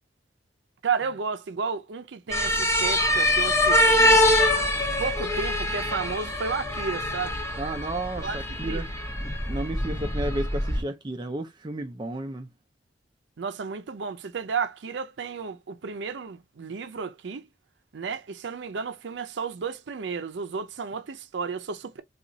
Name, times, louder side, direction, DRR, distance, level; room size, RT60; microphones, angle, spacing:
voice 1, 0.8-4.2 5.0-7.4 8.2-8.4 8.6-8.8 13.4-17.5 17.9-22.0, right 5 dB, 80° right, 0.5 m, -32 dB
sound 1, 2.3-10.8, left 1 dB, 15° left, 0.6 m, -24 dB
voice 2, 7.6-8.9 9.5-12.5, right 1 dB, 25° right, 0.4 m, -32 dB
3.9 x 2.4 x 2.7 m
head